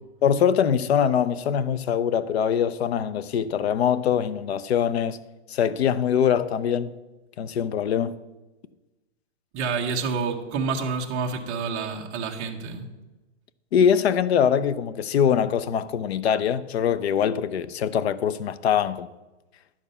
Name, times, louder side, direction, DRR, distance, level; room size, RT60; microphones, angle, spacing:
voice 1, 0.2-5.2 5.5-6.9 7.4-8.2 13.7-19.1, left 8 dB, 65° left, 0.7 m, -23 dB
voice 2, 9.5-12.9, right 5 dB, 20° right, 0.9 m, -28 dB
10.5 x 7.3 x 5.5 m
hypercardioid pair, 170°, 34 cm